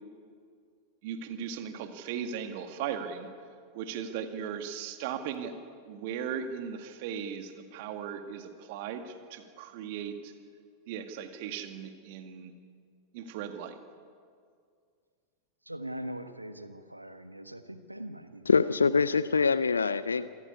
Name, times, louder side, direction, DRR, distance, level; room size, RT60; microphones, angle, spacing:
voice 1, 1.0-3.3 3.7-5.6 5.9-10.3 10.9-12.5 13.1-13.8, right 8 dB, 50° right, 7 dB, 2.0 m, -37 dB
voice 2, 15.6-18.5 19.4-19.6 20.1-20.3, right 1 dB, 85° right, 9 dB, 1.3 m, -42 dB
voice 3, 18.5-20.3, left 5 dB, 75° left, 16 dB, 0.5 m, -24 dB
26.5 x 14.5 x 9.8 m, 2.2 s
figure-of-eight pair, 90°, 0 cm